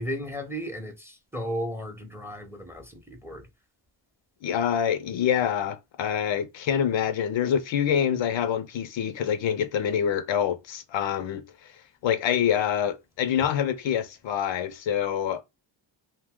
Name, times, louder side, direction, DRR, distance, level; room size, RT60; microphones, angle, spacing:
voice 1, 0.0-3.5, equal, 5° right, 0.6 m, -35 dB
voice 2, 4.4-11.4 12.0-15.4, left 9 dB, 70° left, 0.5 m, -26 dB
2.7 x 2.1 x 3.5 m
cardioid pair, 85°, 48 cm